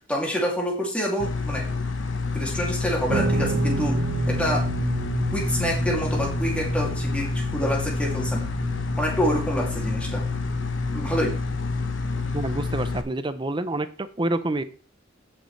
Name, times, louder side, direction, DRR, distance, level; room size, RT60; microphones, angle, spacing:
voice 1, 0.1-1.7 2.3-4.0 4.3-4.7 5.3-8.4 9.0-10.3 10.9-11.4, equal, 5° left, -2 dB, 2.5 m, -27 dB
sound 1, 1.2-13.0, left 4 dB, 65° left, 1.2 m, -28 dB
Guitar, 3.1-12.4, right 3 dB, 85° right, 0.9 m, -31 dB
voice 2, 12.3-14.6, right 2 dB, 25° right, 12 dB, 0.6 m, -27 dB
15.0 x 6.4 x 3.2 m, 0.37 s
head